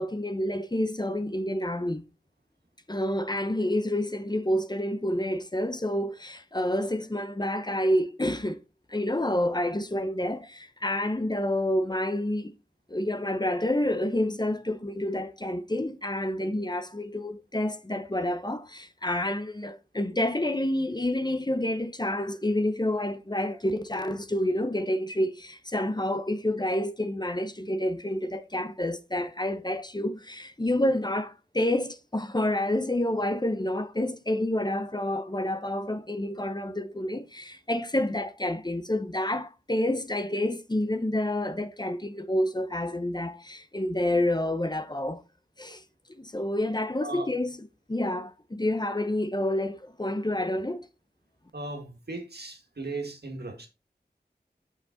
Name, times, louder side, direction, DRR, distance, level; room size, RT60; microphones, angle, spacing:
voice 1, 0.0-2.0 2.9-8.6 8.9-12.5 12.9-45.2 45.6-45.8 46.1-47.6 47.9-50.8, left 1 dB, 25° left, 0.7 m, -28 dB
voice 2, 51.5-53.7, right 2 dB, 80° right, 1.8 m, -37 dB
7.0 x 5.8 x 3.8 m
wide cardioid pair, 45°, 17 cm